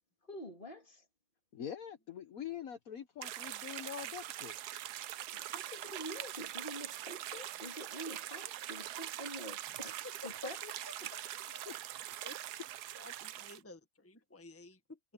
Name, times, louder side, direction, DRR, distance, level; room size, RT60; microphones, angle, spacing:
voice 1, 0.3-1.0 5.3-10.7 11.0-11.1 11.5-11.6, equal, 30° left, 2.8 m, -47 dB
voice 2, 1.5-4.6 11.6-11.8, left 9 dB, 65° left, 1.4 m, -44 dB
sound 1, 3.2-13.6, right 13 dB, 80° right, 1.2 m, -43 dB
voice 3, 12.9-15.0, left 2 dB, 10° left, 1.5 m, -52 dB
omnidirectional pair, 1.7 m